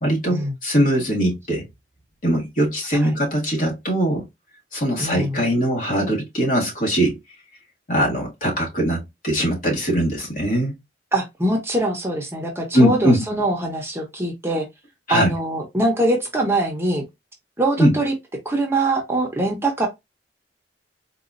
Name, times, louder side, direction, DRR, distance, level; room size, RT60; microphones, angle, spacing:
voice 1, 0.0-1.6 2.2-4.3 4.7-7.2 7.9-10.7 12.7-13.2 15.1-15.3 17.8-17.9, equal, 50° left, 1.6 m, -21 dB
voice 2, 5.0-5.4 11.1-14.7 15.1-17.0 17.6-18.1 18.4-19.9, right 1 dB, 15° right, 0.8 m, -23 dB
4.0 x 2.4 x 2.5 m
head